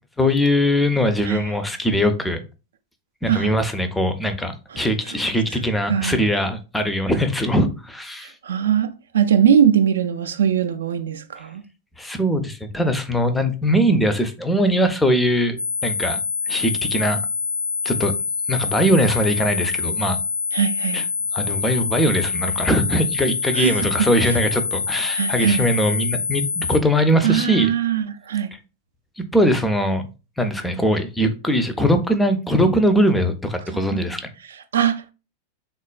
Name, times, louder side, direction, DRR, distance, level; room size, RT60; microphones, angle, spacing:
voice 1, 0.2-2.4 3.2-8.3 12.0-15.6 15.8-16.2 16.5-17.2 17.8-18.1 18.5-20.2 20.9-21.0 21.3-27.7 29.2-30.0 30.4-34.3, equal, 5° left, 0.4 m, -21 dB
voice 2, 4.7-5.2 5.9-6.2 8.2-11.6 20.5-21.1 23.5-24.4 25.1-25.7 27.2-28.5 33.9-34.0 34.4-35.1, right 8 dB, 65° right, 0.3 m, -21 dB
sound 1, 15.6-26.8, left 5 dB, 90° left, 0.5 m, -25 dB
3.4 x 2.3 x 2.2 m
figure-of-eight pair, 90°, 0 cm